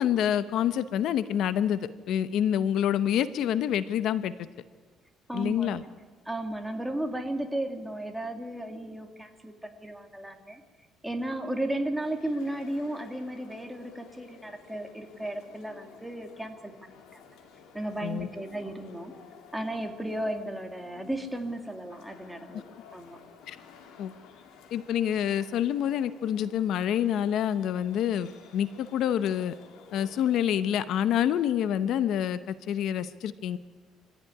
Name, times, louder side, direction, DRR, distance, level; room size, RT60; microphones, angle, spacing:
voice 1, 0.0-4.3 5.3-5.8 18.0-18.3 22.5-22.6 23.5-23.6 24.0-24.1 24.7-29.5 29.9-33.6, left 10 dB, 65° left, 13 dB, 0.8 m, -27 dB
voice 2, 5.3-5.9 6.3-10.6 11.0-17.2 17.7-19.1 19.5-22.6 22.9-23.2, right 1 dB, 5° right, 4 dB, 2.2 m, -34 dB
sound 1, 12.0-30.6, left 6 dB, 85° left, 3.2 m, -53 dB
24.5 x 15.5 x 9.7 m, 1.5 s
cardioid pair, 130°, 0 cm